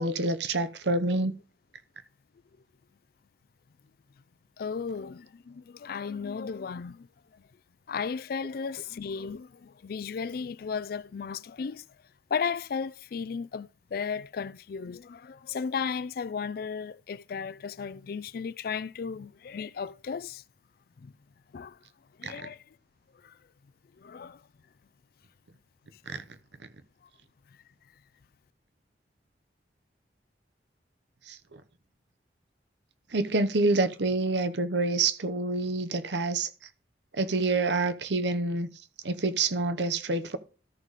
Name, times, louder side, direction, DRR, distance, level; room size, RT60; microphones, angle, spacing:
voice 1, 0.0-1.4 22.2-22.3 26.1-26.2 31.3-31.6 33.1-36.5 37.1-38.7 39.0-40.4, right 3 dB, 80° right, 0.9 m, -27 dB
voice 2, 4.6-7.1 7.3-7.4 7.9-11.8 12.3-20.4 21.0-21.1 21.5-21.8 22.2-22.6 23.2-23.3 24.0-24.4, left 6 dB, 55° left, 0.4 m, -35 dB
13.5 x 4.8 x 4.1 m
head